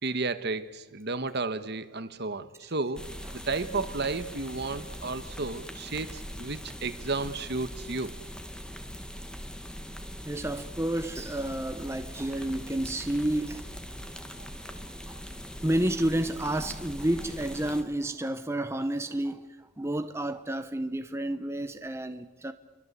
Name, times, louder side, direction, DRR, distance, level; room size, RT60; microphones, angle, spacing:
voice 1, 0.0-3.1 3.3-8.1, right 3 dB, 50° right, 1.4 m, -32 dB
sound 1, 3.0-17.8, equal, 5° left, 1.8 m, -41 dB
voice 2, 10.2-14.0 15.1-15.2 15.6-22.5, right 1 dB, 10° right, 0.8 m, -30 dB
28.0 x 24.0 x 8.2 m
head